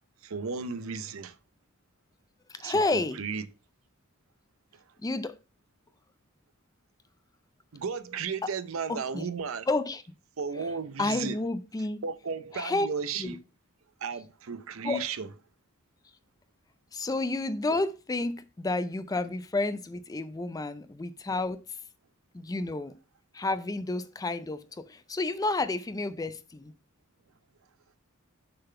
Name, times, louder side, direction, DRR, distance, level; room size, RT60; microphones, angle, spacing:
voice 1, 0.2-1.4 2.6-3.4 7.7-9.7 10.4-11.4 12.0-13.4 14.0-15.3, right 5 dB, 65° right, 0.6 m, -34 dB
voice 2, 2.5-3.2 5.0-5.3 8.9-9.3 9.7-10.0 11.0-12.0 12.5-12.9 13.2-13.4 14.8-15.1 16.9-21.8 22.3-23.0 23.3-26.7, left 2 dB, 15° left, 0.4 m, -30 dB
6.6 x 3.8 x 5.5 m
head